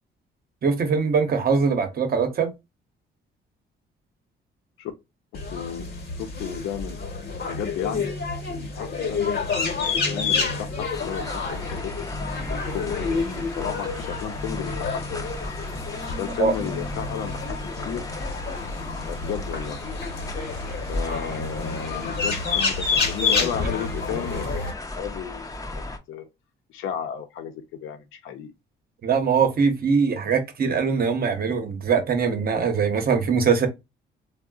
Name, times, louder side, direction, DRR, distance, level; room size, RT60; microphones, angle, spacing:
voice 1, 0.6-2.5 16.4-16.5 29.0-33.7, right 5 dB, 50° right, 0.8 m, -22 dB
voice 2, 5.3-5.9 6.2-8.1 8.5-9.4 9.7-11.9 12.5-15.3 16.1-17.6 17.9-18.0 19.0-19.8 20.9-25.5 26.1-26.2 26.7-27.5 27.8-28.5, left 8 dB, 85° left, 0.6 m, -33 dB
sound 1, 5.3-24.7, left 4 dB, 55° left, 1.0 m, -29 dB
sound 2, 10.9-26.0, left 2 dB, 20° left, 0.6 m, -35 dB
3.6 x 2.1 x 2.3 m
cardioid pair, 90°, 20 cm